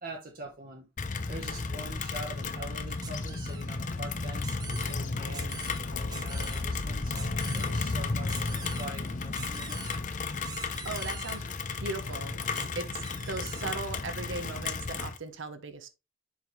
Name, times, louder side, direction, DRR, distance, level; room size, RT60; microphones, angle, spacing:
voice 1, 0.0-0.9 1.3-7.2 7.5-9.8, right 2 dB, 40° right, 1.2 m, -44 dB
Rain, 1.0-15.2, left 4 dB, 35° left, 0.6 m, -33 dB
sound 1, 3.0-3.7 4.4-5.0 5.3-5.8 6.1-6.6 7.1-7.7 8.3-8.9 9.3-10.0 10.4-11.4 12.5-12.7 13.0-13.8, right 5 dB, 20° right, 0.7 m, -44 dB
sound 2, 4.6-14.6, left 2 dB, 80° left, 1.2 m, -50 dB
voice 2, 10.8-11.4 11.8-12.4 12.8-15.9, right 3 dB, 65° right, 0.9 m, -38 dB
7.3 x 5.6 x 3.1 m
head